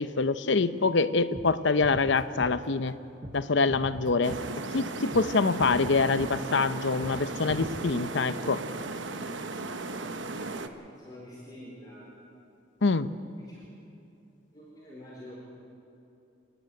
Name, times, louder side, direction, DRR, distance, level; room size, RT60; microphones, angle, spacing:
voice 1, 0.0-3.0 3.3-4.4 4.7-8.6 12.8-13.1, left 4 dB, 70° left, 13 dB, 0.8 m, -25 dB
sound 1, 1.0-1.1 1.3-1.5 1.8-2.9 3.2-3.4 3.7-4.8 5.1-5.3 5.6-6.7 7.0-7.2 7.5-8.1, right 1 dB, 20° right, 0.7 m, -42 dB
sound 2, 4.2-10.7, right 3 dB, 75° right, 1.1 m, -36 dB
voice 2, 10.4-12.2 13.5-13.6 14.5-15.4, left 1 dB, 20° left, -7 dB, 4.5 m, -47 dB
30.0 x 10.5 x 9.3 m, 2.7 s
head